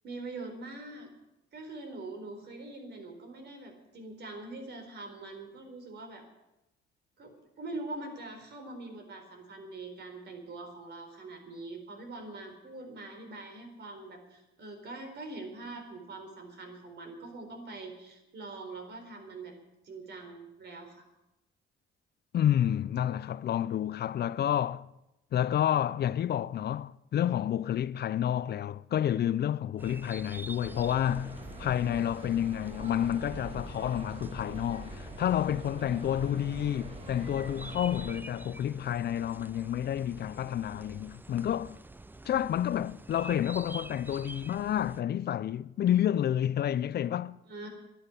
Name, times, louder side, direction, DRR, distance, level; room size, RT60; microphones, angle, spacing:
voice 1, 0.0-1.1 1.5-6.2 7.2-19.5 19.8-21.0 35.9-36.0 47.5-47.7, right 2 dB, 60° right, 4.3 m, -43 dB
voice 2, 22.3-24.9 25.3-41.8 42.3-47.4, left 10 dB, 55° left, 0.5 m, -29 dB
sound 1, 29.8-45.0, right 2 dB, 10° right, 0.5 m, -48 dB
sound 2, 30.6-38.2, right 2 dB, 30° right, 2.8 m, -44 dB
11.0 x 11.0 x 9.9 m
cardioid pair, 90°, 20 cm